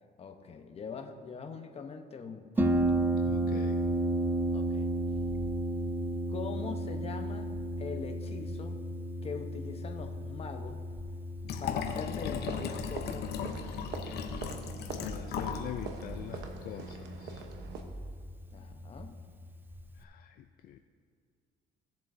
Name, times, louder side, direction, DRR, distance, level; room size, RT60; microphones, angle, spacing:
voice 1, 0.2-2.9 4.5-4.9 6.3-8.8 9.2-10.8 11.6-14.1 18.5-19.2, left 5 dB, 35° left, 5 dB, 0.9 m, -43 dB
Harp, 2.6-20.0, right 1 dB, 10° right, 0.6 m, -34 dB
voice 2, 3.2-3.8 15.0-17.4 20.0-20.8, left 11 dB, 60° left, 6 dB, 0.5 m, -44 dB
Liquid, 11.4-15.7 16.0-16.1, left 7 dB, 75° left, 0.8 m, -37 dB
sound 1, 12.2-17.8, right 5 dB, 85° right, 1.0 m, -44 dB
16.5 x 7.4 x 2.7 m, 2.1 s
cardioid pair, 110°, 17 cm